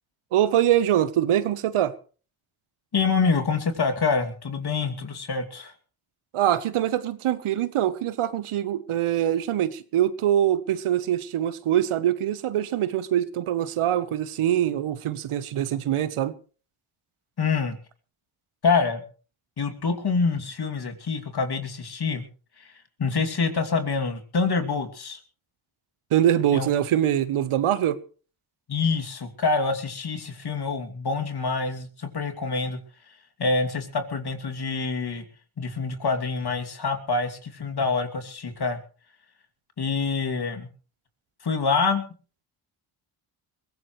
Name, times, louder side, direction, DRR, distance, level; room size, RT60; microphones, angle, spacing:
voice 1, 0.3-1.9 6.3-16.3 26.1-28.0, right 11 dB, 80° right, 1.2 m, -23 dB
voice 2, 2.9-5.7 17.4-17.8 18.6-19.0 19.6-22.2 22.6-22.7 23.0-25.2 26.5-26.7 28.7-32.8 33.1-35.2 35.6-38.8 39.8-40.7 41.4-42.1, left 4 dB, 50° left, 2.8 m, -26 dB
22.0 x 16.0 x 3.2 m
cardioid pair, 65°, 50 cm